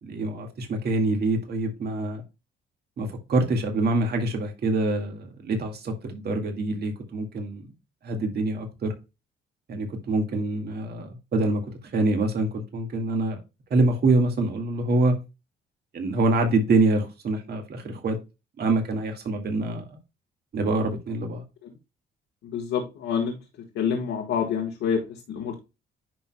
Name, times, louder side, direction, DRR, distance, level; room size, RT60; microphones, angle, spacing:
voice 1, 0.0-2.2 3.0-7.6 8.0-8.9 9.7-11.6 11.9-13.4 13.7-15.1 15.9-18.2 18.6-19.9 20.5-21.4, right 2 dB, 55° right, 1.9 m, -25 dB
voice 2, 22.4-23.4 23.7-25.6, left 7 dB, 85° left, 1.5 m, -27 dB
10.5 x 4.6 x 2.2 m
cardioid pair, 90°, 20 cm